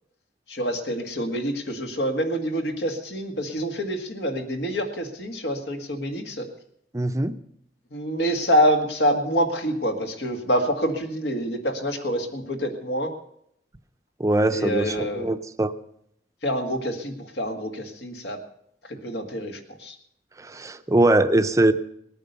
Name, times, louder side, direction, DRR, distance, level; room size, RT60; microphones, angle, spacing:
voice 1, 0.5-6.5 7.9-13.1 14.5-15.3 16.4-18.4 18.9-20.0, equal, 75° left, 5 dB, 2.0 m, -26 dB
voice 2, 6.9-7.4 14.2-15.7 20.4-21.7, right 1 dB, 20° right, 10 dB, 0.6 m, -21 dB
19.5 x 9.1 x 6.8 m, 0.72 s
head